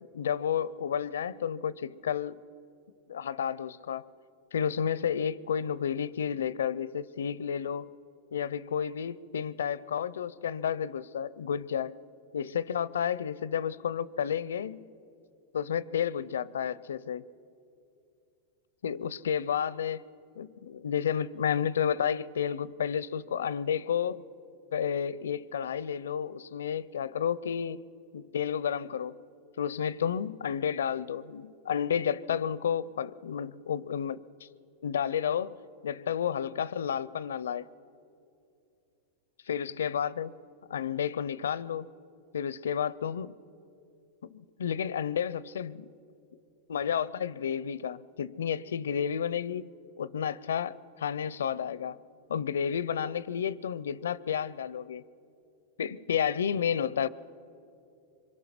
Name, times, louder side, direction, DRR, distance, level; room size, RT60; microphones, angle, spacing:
voice 1, 0.1-2.4 3.1-4.1 4.5-7.9 8.3-12.0 12.3-14.9 15.5-17.2 18.8-20.0 20.4-24.2 24.7-27.9 28.1-29.2 29.6-34.5 34.8-35.6 35.8-37.7 39.5-40.3 40.7-41.9 42.3-43.4 44.2-45.9 46.7-49.7 50.0-52.0 52.3-55.0 55.8-57.1, left 8 dB, 90° left, 0.5 m, -31 dB
24.5 x 22.0 x 6.0 m
hypercardioid pair, 125°, 0 cm